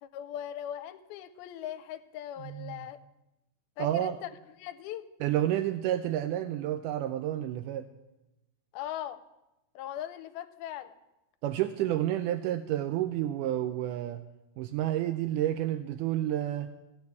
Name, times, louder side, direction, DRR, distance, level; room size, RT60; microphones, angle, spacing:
voice 1, 0.0-3.0 3.8-4.3 4.6-5.0 8.7-9.2 9.8-10.9, left 11 dB, 85° left, 11 dB, 2.5 m, -39 dB
voice 2, 2.4-2.8 3.8-4.2 5.2-7.9 11.4-14.2 14.6-16.7, right 12 dB, 85° right, 9 dB, 1.8 m, -30 dB
16.0 x 6.7 x 9.5 m, 0.96 s
omnidirectional pair, 4.3 m